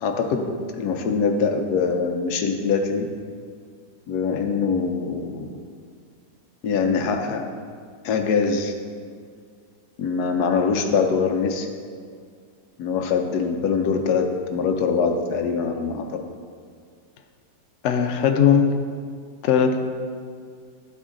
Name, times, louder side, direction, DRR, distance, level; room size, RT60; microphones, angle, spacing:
voice 1, 0.0-3.0 4.1-5.5 6.6-7.4 8.0-8.7 10.0-11.7 12.8-16.1, left 5 dB, 70° left, 4 dB, 1.1 m, -23 dB
voice 2, 17.8-18.7 19.4-19.8, left 7 dB, 85° left, 5 dB, 0.6 m, -18 dB
12.0 x 4.4 x 3.7 m, 2.1 s
omnidirectional pair, 2.0 m